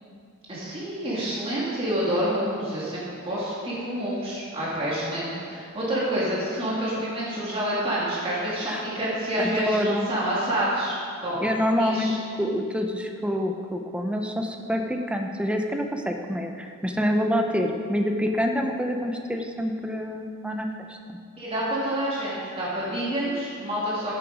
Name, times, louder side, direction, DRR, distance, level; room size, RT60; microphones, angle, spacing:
voice 1, 0.5-11.5 11.8-12.2 21.4-24.2, right 1 dB, 25° right, -8 dB, 2.4 m, -28 dB
voice 2, 9.4-10.1 11.4-21.0, equal, 5° right, 3 dB, 0.6 m, -27 dB
10.5 x 7.9 x 5.0 m, 2.2 s
head